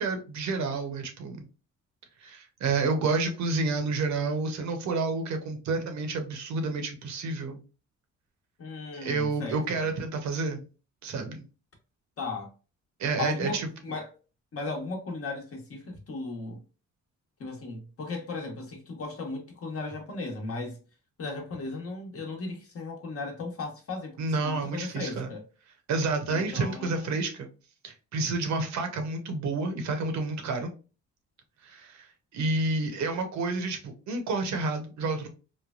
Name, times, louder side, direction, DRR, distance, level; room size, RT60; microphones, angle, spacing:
voice 1, 0.0-1.5 2.2-7.6 8.9-10.6 11.0-11.5 13.0-13.7 24.2-25.3 25.9-27.5 27.8-30.7 31.6-32.1 32.3-35.3, right 3 dB, 70° right, 0.8 m, -29 dB
voice 2, 8.6-9.9 12.2-12.5 13.2-14.1 14.5-16.6 17.4-20.8 21.2-25.4 26.3-27.2, left 3 dB, 50° left, 1.0 m, -36 dB
3.1 x 2.2 x 2.3 m
cardioid pair, 90°, 30 cm